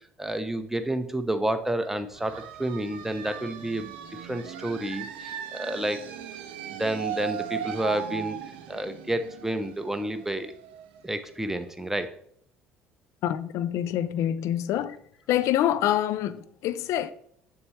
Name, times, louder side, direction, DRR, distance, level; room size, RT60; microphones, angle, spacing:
voice 1, 0.0-3.9 4.2-6.1 6.8-8.4 8.7-10.5 11.0-12.1, right 1 dB, 5° right, 0.8 m, -30 dB
sound 1, 2.1-11.6, right 9 dB, 75° right, 0.7 m, -38 dB
voice 2, 13.2-15.0 15.3-17.1, left 11 dB, 60° left, 0.5 m, -26 dB
6.9 x 6.8 x 3.2 m
hypercardioid pair, 55°, 6 cm